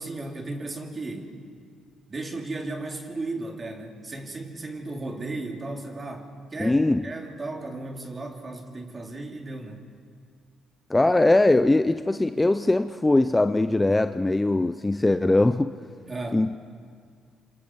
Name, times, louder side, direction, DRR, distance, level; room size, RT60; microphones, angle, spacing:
voice 1, 0.0-1.4 2.1-9.8 16.1-16.4, right 2 dB, 30° right, 2 dB, 3.4 m, -35 dB
voice 2, 6.6-7.0 10.9-15.7 16.3-16.6, left 2 dB, 15° left, 10 dB, 0.6 m, -21 dB
27.5 x 26.5 x 4.8 m, 2.1 s
cardioid pair, 80°, 0 cm